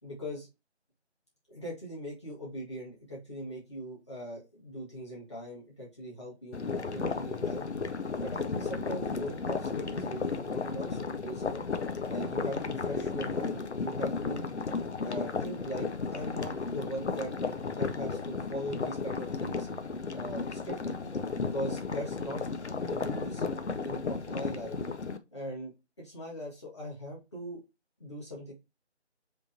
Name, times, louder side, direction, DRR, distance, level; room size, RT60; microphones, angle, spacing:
voice 1, 0.0-0.5 1.5-7.6 8.2-11.6 12.1-14.4 15.0-17.3 17.7-19.7 20.1-21.0 21.4-22.4 22.8-23.4 23.8-24.7 25.3-25.7 26.0-27.6 28.0-28.5, equal, 25° left, -5 dB, 1.7 m, -40 dB
sound 1, 6.5-25.2, left 4 dB, 75° left, 0.7 m, -34 dB
4.9 x 3.6 x 2.6 m, 0.25 s
figure-of-eight pair, 165°, 34 cm